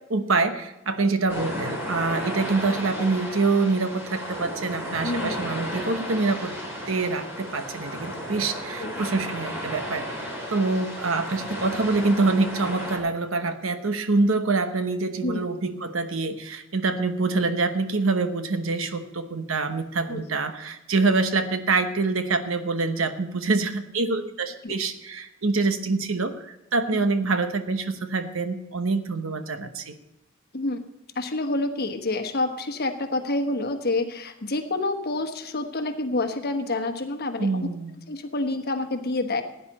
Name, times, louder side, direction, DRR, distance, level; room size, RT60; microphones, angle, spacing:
voice 1, 0.0-6.6 6.9-29.9 37.4-37.9, right 3 dB, 80° right, 9 dB, 1.0 m, -25 dB
sound 1, 1.3-13.0, equal, 10° right, 3.7 m, -34 dB
voice 2, 5.0-5.4 8.8-9.0 15.2-15.4 20.1-20.2 24.6-24.7 26.9-27.0 30.5-30.8 31.1-37.7 38.1-39.4, left 2 dB, 50° left, 6 dB, 1.2 m, -28 dB
16.0 x 9.5 x 4.2 m, 0.95 s
head